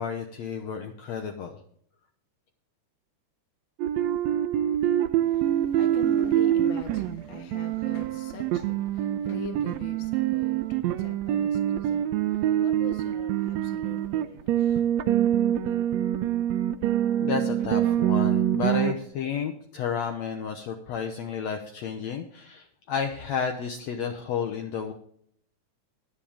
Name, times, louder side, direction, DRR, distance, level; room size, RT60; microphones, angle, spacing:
voice 1, 0.0-1.6 17.2-24.9, left 6 dB, 65° left, 1.9 m, -31 dB
sound 1, 3.8-18.9, right 11 dB, 75° right, 1.6 m, -25 dB
voice 2, 5.1-15.2, left 5 dB, 45° left, 1.8 m, -44 dB
20.0 x 7.6 x 3.5 m
omnidirectional pair, 3.7 m